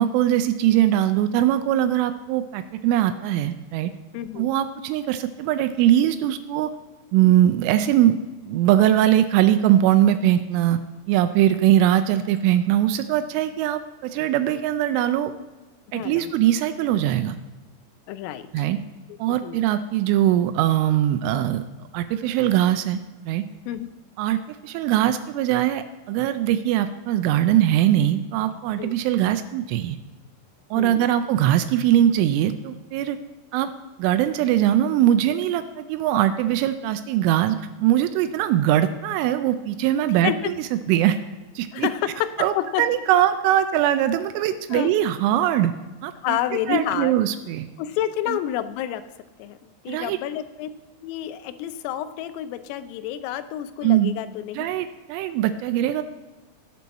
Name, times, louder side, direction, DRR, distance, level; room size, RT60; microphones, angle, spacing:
voice 1, 0.0-3.9 4.4-6.7 7.1-8.2 8.5-10.8 11.1-15.3 15.9-17.4 18.5-18.8 19.2-21.6 21.9-23.0 23.3-23.4 24.2-30.0 30.7-33.2 33.5-33.7 34.0-41.2 41.6-41.9 42.4-45.7 46.0-46.4 46.7-47.7 48.3-48.4 49.9-50.2 53.8-54.1 54.6-56.0, right 12 dB, 85° right, 10 dB, 3.0 m, -21 dB
voice 2, 4.1-4.5 15.9-16.3 18.1-18.7 19.3-19.6 23.7-23.9 28.8-28.9 30.8-31.1 40.2-40.5 41.7-42.3 42.6-42.8 43.1-43.2 44.7-44.9 46.2-47.2 47.8-49.0 49.4-49.6 49.8-50.7 51.0-54.7, left 11 dB, 90° left, 11 dB, 3.3 m, -29 dB
18.0 x 6.9 x 4.1 m, 1.2 s
omnidirectional pair, 5.7 m